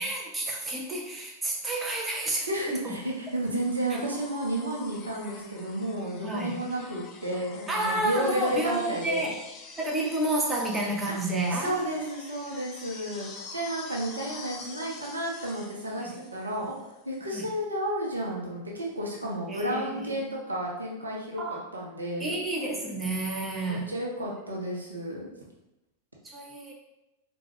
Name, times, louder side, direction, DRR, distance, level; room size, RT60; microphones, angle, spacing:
voice 1, 0.0-2.5 2.8-3.0 6.2-6.6 7.7-9.3 9.8-11.7 16.0-16.1 17.3-17.4 19.5-20.2 21.4-21.6 22.2-23.9 26.2-26.7, right 2 dB, 15° right, -2 dB, 0.6 m, -30 dB
voice 2, 2.5-9.3 11.1-11.2 11.5-16.7 17.0-21.4 21.7-22.3 23.7-25.3, right 1 dB, 75° right, -2 dB, 0.7 m, -32 dB
sound 1, 3.0-17.0 18.5-18.6, left 4 dB, 30° left, 0.4 m, -47 dB
3.6 x 2.3 x 2.9 m, 0.92 s
figure-of-eight pair, 90°, 0 cm